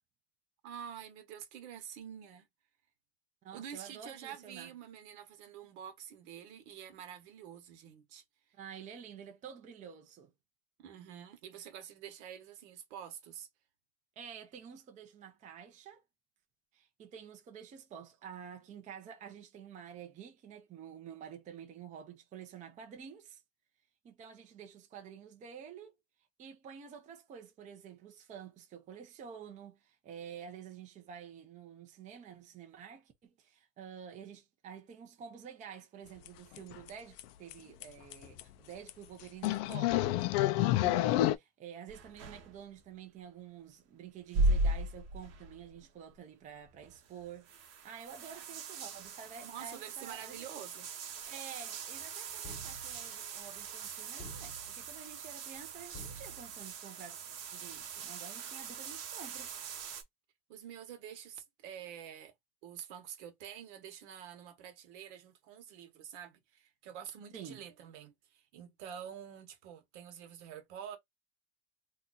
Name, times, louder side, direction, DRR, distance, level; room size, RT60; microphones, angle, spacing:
voice 1, 0.6-2.5 3.5-8.2 10.8-13.5 49.4-50.9 60.5-62.3 62.6-71.0, right 9 dB, 70° right, 1.2 m, -47 dB
voice 2, 3.4-4.7 8.5-10.3 14.2-16.0 16.7-23.4 24.0-25.9 26.4-50.5 51.3-57.2 57.5-59.5 67.3-67.6, right 8 dB, 20° right, 0.6 m, -49 dB
sound 1, 36.3-36.4 36.6-36.9 37.2-37.3 37.5-37.6 37.8-37.9 38.1-38.4 38.9-39.0 39.4-41.4, left 15 dB, 55° left, 0.4 m, -28 dB
sound 2, 41.9-42.9 44.2-45.8 46.1-46.2 46.6-60.0, right 2 dB, 45° right, 1.0 m, -38 dB
sound 3, 52.4-53.2 54.2-54.9 55.9-56.7, right 1 dB, 20° left, 0.8 m, -49 dB
2.8 x 2.4 x 3.8 m
supercardioid pair, 155°, 35 cm